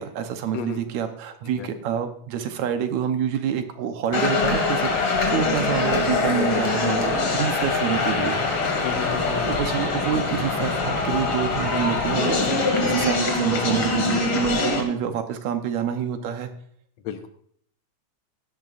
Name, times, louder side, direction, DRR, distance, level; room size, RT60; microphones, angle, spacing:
voice 1, 0.0-8.4 9.5-16.5, right 8 dB, 75° right, 7 dB, 2.2 m, -27 dB
sound 1, 4.1-14.8, left 3 dB, 50° left, 2.5 m, -23 dB
voice 2, 8.8-9.6 9.9-10.2 17.0-17.3, left 6 dB, 70° left, 7 dB, 2.1 m, -33 dB
16.5 x 11.0 x 2.5 m, 0.63 s
omnidirectional pair, 3.4 m